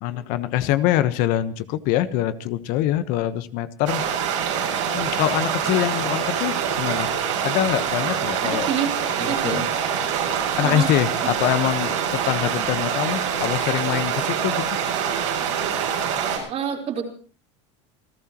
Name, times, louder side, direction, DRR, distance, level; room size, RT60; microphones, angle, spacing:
voice 1, 0.0-4.0 4.7-7.1 7.4-8.7 9.4-9.6 10.6-14.7, left 13 dB, 60° left, 12 dB, 1.2 m, -24 dB
sound 1, 3.9-16.4, right 8 dB, 90° right, 7.4 m, -25 dB
voice 2, 8.4-9.7 10.6-10.9 11.4-11.5 16.5-17.0, right 7 dB, 45° right, 2 dB, 4.1 m, -28 dB
27.5 x 15.0 x 3.0 m, 0.41 s
supercardioid pair, 110°, 15 cm